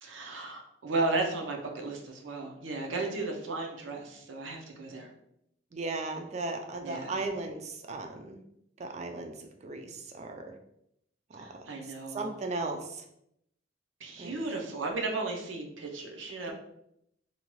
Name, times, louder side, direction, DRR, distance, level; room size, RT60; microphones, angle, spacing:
voice 1, 0.0-5.1 6.8-7.2 11.4-12.3 14.0-16.5, right 3 dB, 80° right, 2 dB, 0.6 m, -34 dB
voice 2, 5.7-8.4 8.8-10.5 11.3-11.7 12.1-13.0 14.2-14.4 16.5-16.6, right 3 dB, 35° right, 4 dB, 0.3 m, -36 dB
2.7 x 2.2 x 2.9 m, 0.76 s
head